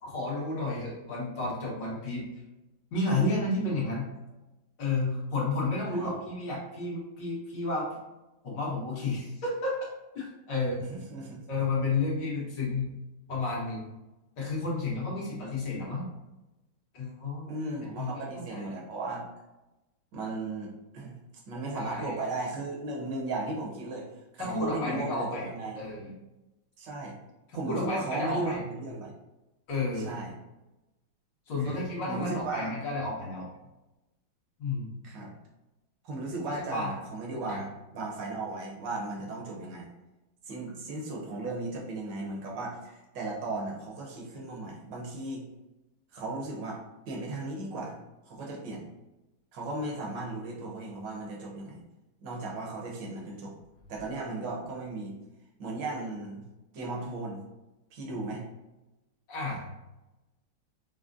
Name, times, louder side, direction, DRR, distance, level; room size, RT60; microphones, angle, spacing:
voice 1, 0.0-2.3 2.9-4.1 4.8-7.9 8.4-9.7 10.2-11.0 11.5-12.9 13.3-13.8 14.4-16.1 16.9-17.5 18.0-18.6 21.7-22.2 24.4-25.5 25.8-26.1 27.5-28.6 29.7-30.2 31.5-33.5 34.6-34.9 36.7-36.9 37.5-37.6 59.3-59.7, left 2 dB, 65° left, -5 dB, 1.8 m, -31 dB
voice 2, 10.9-11.4 17.5-19.2 20.1-21.1 21.5-25.8 26.8-27.1 27.5-29.1 30.0-30.3 31.6-32.7 35.0-35.3 36.0-39.8 40.5-45.4 46.1-46.8 47.1-48.0 48.3-48.9 49.5-51.8 52.2-53.5 53.9-55.2 55.6-56.4 56.7-57.4 57.9-58.4, right 2 dB, 65° right, -2 dB, 1.5 m, -36 dB
6.0 x 2.1 x 2.5 m, 1.0 s
omnidirectional pair, 2.2 m